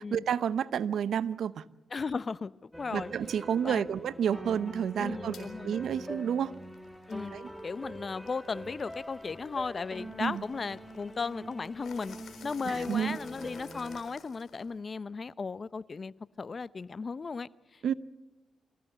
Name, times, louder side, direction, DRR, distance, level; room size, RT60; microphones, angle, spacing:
voice 1, 0.1-1.6 2.9-6.5 7.3-7.5 10.2-10.4 12.9-13.2 17.8-17.9, right 8 dB, 80° right, 17 dB, 0.7 m, -30 dB
voice 2, 1.9-3.1 3.6-3.9 5.0-5.7 7.1-7.3 7.6-12.2 12.4-17.9, left 4 dB, 50° left, 17 dB, 0.8 m, -36 dB
sound 1, 2.7-14.0, right 1 dB, ahead, 2.4 m, -44 dB
sound 2, 5.3-5.5 6.0-14.8, left 6 dB, 75° left, 4.0 m, -55 dB
25.5 x 15.5 x 8.0 m, 1.2 s
supercardioid pair, 55°, 0 cm